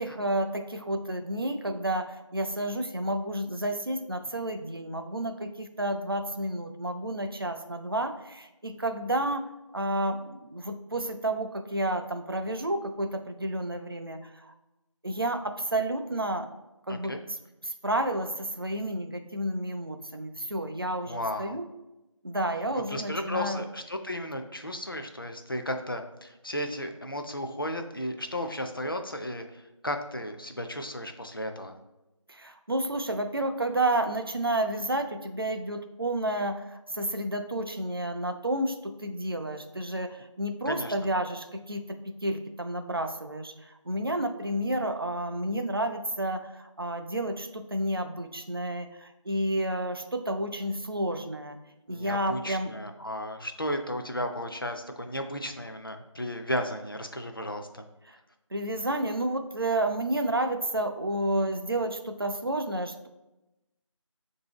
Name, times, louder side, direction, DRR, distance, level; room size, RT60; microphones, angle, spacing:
voice 1, 0.0-14.5 15.0-16.5 16.9-17.1 17.6-21.7 22.2-23.7 32.3-51.6 51.9-52.7 58.1-58.2 58.5-63.1, right 1 dB, 45° right, 6 dB, 0.4 m, -31 dB
voice 2, 16.9-17.2 21.0-21.6 22.9-31.8 40.7-40.9 51.9-57.8, left 1 dB, 45° left, 5 dB, 0.4 m, -34 dB
6.8 x 2.6 x 2.9 m, 0.98 s
figure-of-eight pair, 170°, 17 cm